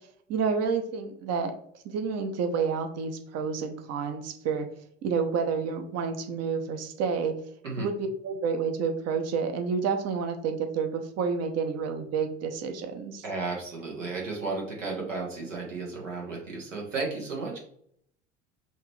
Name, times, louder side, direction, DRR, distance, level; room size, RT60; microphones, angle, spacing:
voice 1, 0.3-1.5 1.8-4.7 5.0-7.3 7.8-13.2, right 5 dB, 45° right, 6 dB, 0.9 m, -29 dB
voice 2, 13.2-17.6, right 3 dB, 80° right, -2 dB, 1.5 m, -33 dB
5.7 x 2.8 x 3.2 m, 0.67 s
figure-of-eight pair, 70°, 37 cm